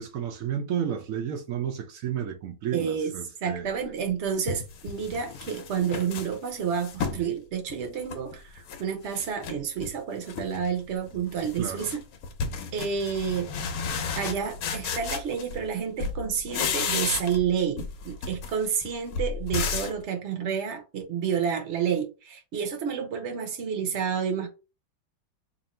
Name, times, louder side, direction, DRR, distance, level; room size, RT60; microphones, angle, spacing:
voice 1, 0.0-3.7 11.6-11.9, right 8 dB, 85° right, 0.7 m, -32 dB
voice 2, 2.7-3.1 3.4-12.0 12.7-13.5 14.2-24.5, right 7 dB, 55° right, 0.8 m, -29 dB
sound 1, 3.8-3.9 4.5-7.3 7.7-8.8 9.1-9.9 10.3-10.7 11.0-15.7 16.0-17.5 17.8-20.0, left 5 dB, 65° left, 0.9 m, -33 dB
2.9 x 2.7 x 4.1 m
omnidirectional pair, 2.2 m